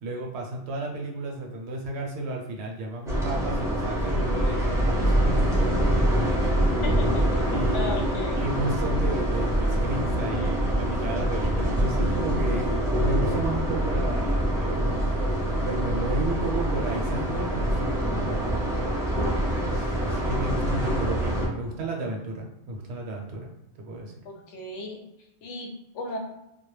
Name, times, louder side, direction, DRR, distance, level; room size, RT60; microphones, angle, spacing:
voice 1, 0.0-6.3 7.5-8.1 8.4-18.9 19.7-24.1, right 2 dB, 70° right, 0 dB, 0.8 m, -33 dB
sound 1, 3.1-21.5, equal, 5° right, 0.4 m, -25 dB
voice 2, 6.8-7.4 7.7-8.4 24.3-25.0 25.4-26.2, left 1 dB, 80° left, 1 dB, 0.9 m, -35 dB
2.2 x 2.0 x 3.1 m, 0.86 s
omnidirectional pair, 1.2 m